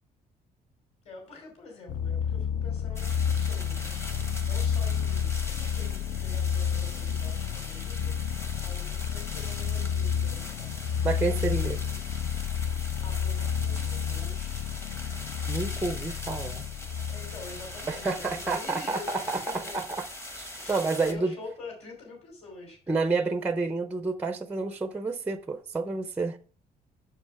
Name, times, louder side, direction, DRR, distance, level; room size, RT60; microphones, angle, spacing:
voice 1, 1.0-3.9 4.4-10.8 13.0-14.7 17.1-19.9 20.6-22.8, left 3 dB, 40° left, 3.0 m, -46 dB
sound 1, 1.9-18.6, left 8 dB, 65° left, 0.5 m, -30 dB
sound 2, 3.0-21.1, left 1 dB, 15° left, 1.0 m, -41 dB
voice 2, 11.0-11.8 15.5-16.6 17.9-19.4 19.7-19.8 20.4-21.3 22.9-26.4, right 3 dB, 10° right, 0.4 m, -29 dB
7.3 x 7.0 x 4.5 m
cardioid pair, 180°, 16 cm